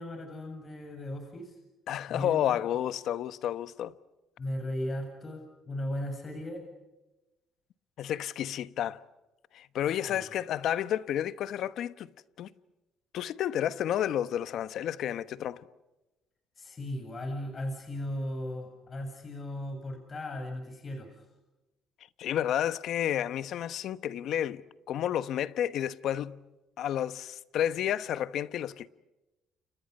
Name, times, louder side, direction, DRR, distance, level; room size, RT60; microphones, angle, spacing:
voice 1, 0.0-1.6 2.1-2.6 4.4-6.6 10.1-10.3 16.6-21.1, left 1 dB, 35° left, 7.6 m, -37 dB
voice 2, 1.9-3.9 8.0-9.0 9.5-12.1 12.4-12.5 13.1-15.6 22.2-26.5 26.8-28.9, left 10 dB, 65° left, 1.1 m, -31 dB
30.0 x 29.5 x 5.5 m
cardioid pair, 100°, 0 cm